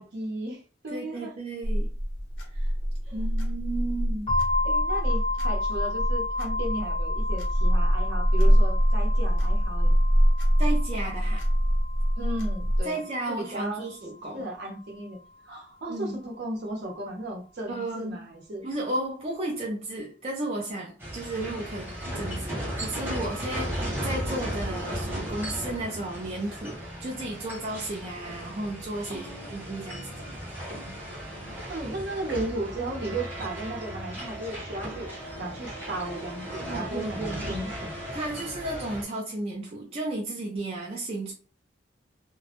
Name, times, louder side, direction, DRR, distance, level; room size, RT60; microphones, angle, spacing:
voice 1, 0.0-1.3 3.1-3.2 4.6-9.9 12.2-13.9 14.3-15.2 15.5-18.6 29.1-29.5 30.2-30.4 31.7-38.0, right 1 dB, 60° right, 0.8 m, -35 dB
voice 2, 0.9-1.9 2.5-2.7 3.1-4.3 10.6-11.4 12.8-14.5 15.9-16.2 17.7-18.3 18.6-30.2 36.7-37.5 38.1-41.3, right 2 dB, 35° right, 0.4 m, -34 dB
sound 1, 1.6-12.8, equal, 75° left, 0.7 m, -24 dB
sound 2, 4.3-13.9, left 2 dB, 30° left, 0.6 m, -32 dB
sound 3, 21.0-39.0, equal, 10° right, 0.9 m, -36 dB
2.1 x 2.0 x 2.8 m
head